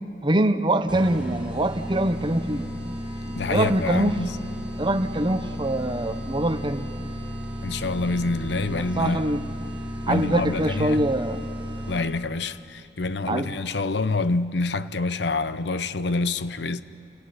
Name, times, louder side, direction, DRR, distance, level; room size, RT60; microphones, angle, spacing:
voice 1, 0.2-2.7 3.2-4.2 4.8-6.9 8.8-9.4 10.1-11.4 13.3-13.5, right 1 dB, 25° right, 0.9 m, -24 dB
sound 1, 0.9-12.3, equal, 5° right, 3.8 m, -34 dB
voice 2, 3.4-4.4 7.6-9.3 10.1-11.0 11.9-16.8, left 3 dB, 75° left, 0.8 m, -27 dB
28.5 x 19.5 x 9.5 m
head